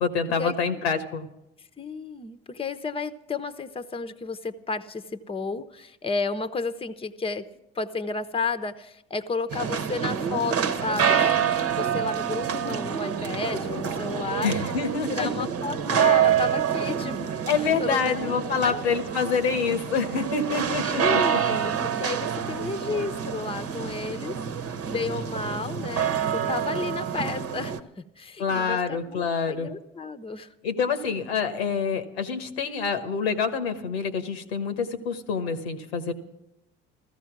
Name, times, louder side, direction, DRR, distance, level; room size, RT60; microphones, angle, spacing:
voice 1, 0.0-1.3 14.4-15.3 17.5-21.4 28.4-29.7 30.6-36.1, left 5 dB, 85° left, 9 dB, 1.2 m, -27 dB
voice 2, 1.8-7.5 7.7-11.5 11.8-14.5 15.1-18.8 20.8-24.4 24.9-30.5, left 4 dB, 20° left, 12 dB, 0.9 m, -32 dB
sound 1, 9.5-27.8, right 8 dB, 50° right, 1.1 m, -27 dB
14.5 x 14.5 x 6.0 m, 0.86 s
hypercardioid pair, 55°, 31 cm